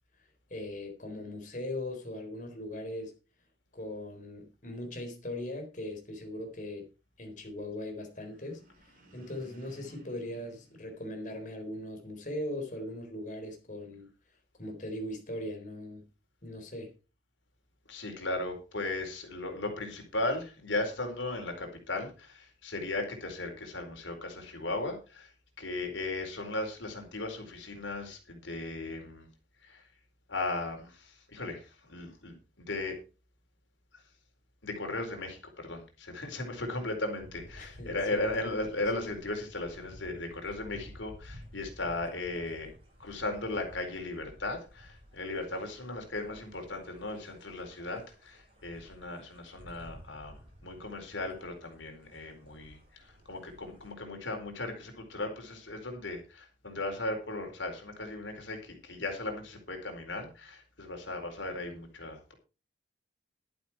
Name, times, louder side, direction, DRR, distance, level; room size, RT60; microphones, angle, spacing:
voice 1, 0.5-3.1 3.7-6.9 7.2-14.1 14.6-16.0 16.4-16.9 37.6-38.6, left 1 dB, 40° left, 4.1 m, -40 dB
sound 1, 8.1-11.7, equal, 45° right, 4.9 m, -57 dB
voice 2, 17.9-25.3 25.6-29.3 29.6-29.9 30.3-33.0 34.6-42.7 43.0-62.3, left 2 dB, 80° left, 4.4 m, -37 dB
sound 2, 37.2-53.9, equal, 30° right, 7.4 m, -54 dB
12.0 x 11.5 x 4.5 m
head